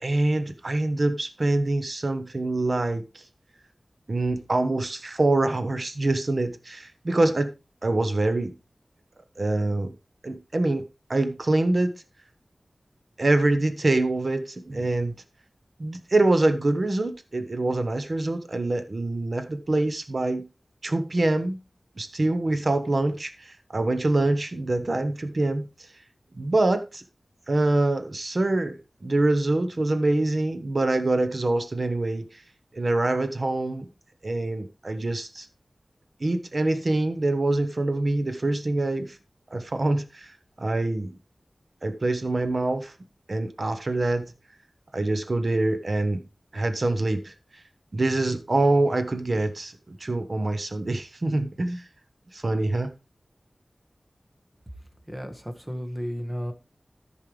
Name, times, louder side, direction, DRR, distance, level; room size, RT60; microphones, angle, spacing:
voice 1, 0.0-3.2 4.1-7.5 7.8-8.5 9.4-9.9 10.2-10.8 11.1-11.9 13.2-15.1 15.8-20.5 20.8-21.6 22.0-25.7 26.4-27.0 27.5-32.4 32.7-33.9 34.2-35.5 36.2-39.2 39.5-40.3 40.6-41.1 41.8-42.9 43.3-44.3 44.9-46.2 46.5-47.3 47.9-51.8 52.3-52.9, right 2 dB, 60° right, 1.1 m, -25 dB
voice 2, 55.1-56.5, equal, 15° right, 1.6 m, -33 dB
14.0 x 5.5 x 3.3 m
wide cardioid pair, 55°, 0 cm